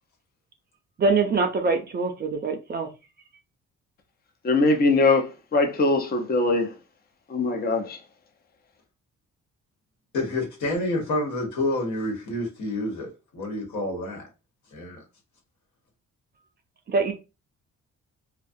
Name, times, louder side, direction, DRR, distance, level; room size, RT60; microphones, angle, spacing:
voice 1, 1.0-2.9 16.9-17.1, right 4 dB, 35° right, 0.5 m, -24 dB
voice 2, 4.4-5.2 5.5-6.7 7.3-8.0, left 3 dB, 30° left, 0.6 m, -21 dB
voice 3, 10.1-14.2 14.7-15.0, left 1 dB, 70° left, 1.2 m, -28 dB
2.4 x 2.2 x 2.6 m
cardioid pair, 90°, 30 cm